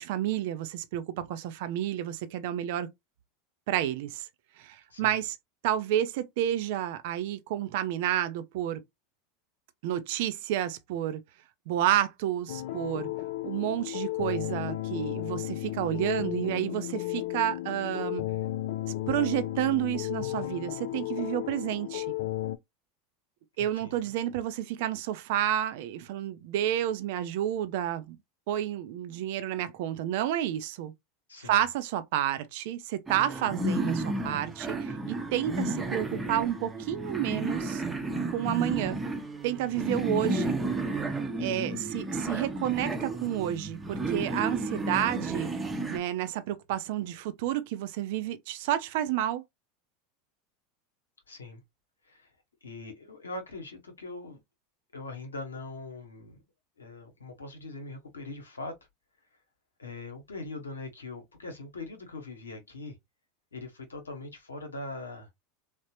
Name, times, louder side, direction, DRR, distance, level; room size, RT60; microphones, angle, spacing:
voice 1, 0.0-2.9 3.7-4.3 4.6-5.4 5.6-8.8 9.8-11.2 11.7-13.1 13.4-18.3 19.1-22.1 23.6-28.2 28.5-30.9 31.4-37.8 38.3-39.0 39.4-40.6 41.4-45.5 45.9-49.4, right 11 dB, 60° right, 0.5 m, -30 dB
voice 2, 4.9-5.2 23.6-24.0 31.3-31.7 51.3-51.6 52.0-52.3 52.6-54.4 54.9-56.4 56.8-58.8 59.8-63.0 63.5-65.3, left 2 dB, 90° left, 0.8 m, -41 dB
sound 1, 12.5-22.6, left 15 dB, 65° left, 0.3 m, -34 dB
sound 2, 33.1-46.0, right 2 dB, 15° right, 0.7 m, -32 dB
3.4 x 2.1 x 2.8 m
hypercardioid pair, 85°, 0 cm